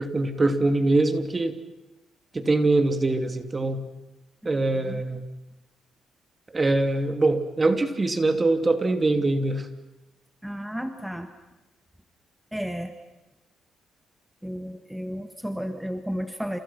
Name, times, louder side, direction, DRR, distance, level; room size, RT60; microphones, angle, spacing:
voice 1, 0.0-1.6 2.3-3.8 4.4-5.2 6.5-9.7, right 2 dB, 25° right, 8 dB, 2.9 m, -23 dB
voice 2, 10.4-11.3 12.5-12.9 14.4-16.6, equal, 5° right, 7 dB, 1.8 m, -32 dB
30.0 x 28.0 x 6.0 m, 1.0 s
cardioid pair, 90°, 0 cm